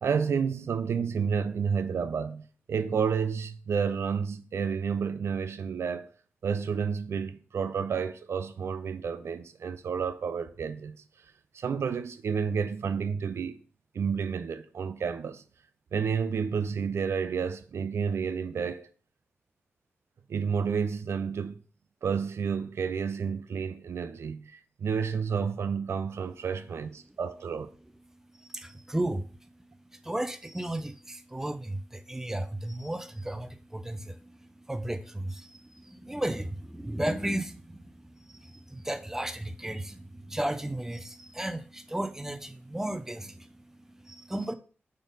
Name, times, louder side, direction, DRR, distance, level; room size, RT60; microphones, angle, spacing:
voice 1, 0.0-6.1 6.4-11.0 11.5-13.6 13.9-15.4 15.9-18.9 20.3-21.6 22.0-27.7, right 6 dB, 85° right, 0.6 m, -30 dB
voice 2, 28.4-29.4 29.9-44.5, right 1 dB, 10° right, 0.5 m, -34 dB
6.2 x 3.8 x 5.3 m
wide cardioid pair, 145°, 4 cm